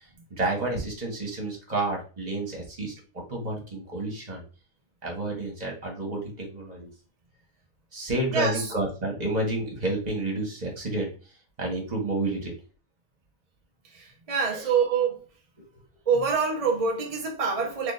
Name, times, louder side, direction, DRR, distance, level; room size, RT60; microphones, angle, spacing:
voice 1, 0.4-2.9 3.3-4.4 5.0-6.9 7.9-11.1 11.6-12.5 14.5-14.6, right 2 dB, 30° right, 1.4 m, -30 dB
voice 2, 8.3-8.7 13.9-15.2 16.1-17.9, right 5 dB, 50° right, 0.4 m, -26 dB
3.7 x 3.3 x 2.5 m
omnidirectional pair, 1.4 m